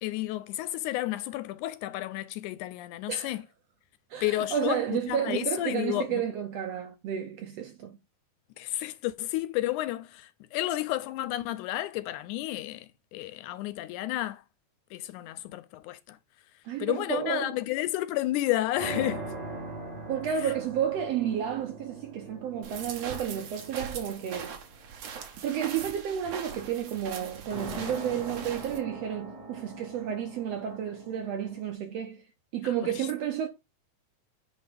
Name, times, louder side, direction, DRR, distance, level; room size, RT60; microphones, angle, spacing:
voice 1, 0.0-3.4 4.2-6.2 8.6-12.9 13.1-14.4 14.9-16.2 16.8-19.2 20.4-20.5 32.8-33.1, left 15 dB, 80° left, 1.9 m, -31 dB
voice 2, 4.1-8.0 16.6-17.6 20.1-24.6 25.4-32.2 32.5-33.5, right 9 dB, 75° right, 1.5 m, -31 dB
sound 1, 18.7-25.1 27.5-31.7, right 2 dB, 30° right, 2.6 m, -42 dB
sound 2, 22.6-28.8, right 6 dB, 55° right, 2.2 m, -41 dB
9.1 x 3.4 x 5.0 m
omnidirectional pair, 3.7 m